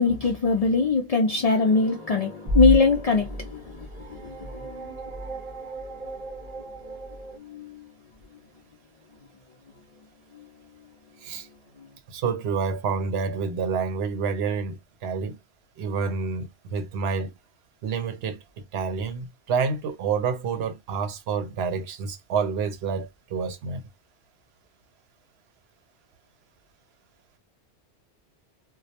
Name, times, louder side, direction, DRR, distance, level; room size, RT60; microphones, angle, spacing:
voice 1, 0.0-4.9 7.4-7.8, left 4 dB, 65° left, 0.3 m, -23 dB
sound 1, 1.5-7.4, right 1 dB, 40° right, 0.9 m, -32 dB
voice 2, 12.1-15.4 15.8-17.3 17.8-18.4 18.7-23.9, right 5 dB, 70° right, 0.8 m, -28 dB
2.2 x 2.0 x 2.7 m
omnidirectional pair, 1.1 m